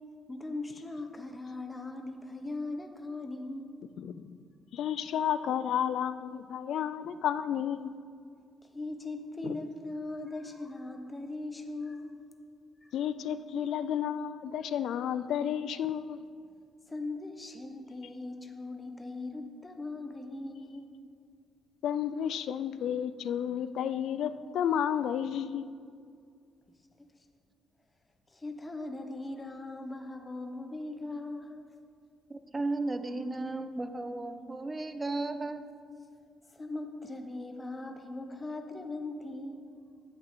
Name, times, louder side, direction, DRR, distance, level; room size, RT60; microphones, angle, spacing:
voice 1, 0.3-3.7 8.6-12.2 12.8-12.9 16.9-20.9 28.3-31.8 36.5-40.0, left 2 dB, 20° left, 4 dB, 0.9 m, -40 dB
voice 2, 4.0-4.4 4.7-7.9 9.4-9.6 12.9-16.2 21.8-25.7, left 9 dB, 75° left, 13 dB, 0.4 m, -32 dB
voice 3, 32.3-35.6, right 2 dB, 25° right, 10 dB, 0.6 m, -34 dB
10.5 x 8.1 x 3.7 m, 2.2 s
cardioid pair, 90°, 0 cm